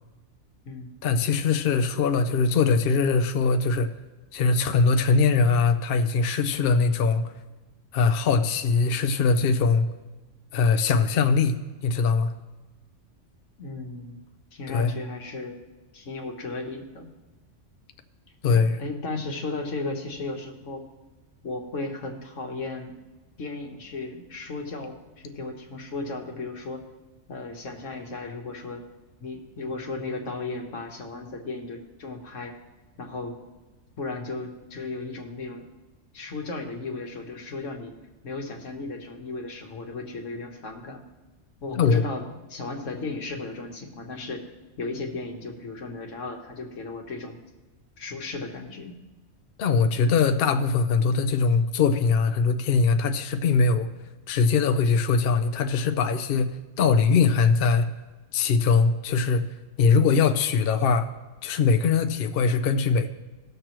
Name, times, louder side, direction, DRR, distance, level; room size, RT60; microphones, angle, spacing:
voice 1, 1.0-3.9 4.3-7.2 7.9-9.9 10.5-11.5 11.8-12.3 14.7-14.9 18.4-18.8 41.7-42.0 49.6-53.9 54.3-57.9 58.3-59.4 59.8-61.1 61.4-63.1, left 5 dB, 60° left, 7 dB, 0.7 m, -21 dB
voice 2, 13.6-14.2 14.5-15.6 15.9-17.1 18.5-20.8 21.4-22.9 23.4-26.8 27.3-28.8 29.2-32.5 33.0-33.4 34.0-35.6 36.1-37.9 38.2-41.0 41.6-44.4 44.8-47.4 48.0-48.9, left 3 dB, 85° left, 2 dB, 1.6 m, -35 dB
18.0 x 6.7 x 3.0 m, 1.2 s
omnidirectional pair, 1.3 m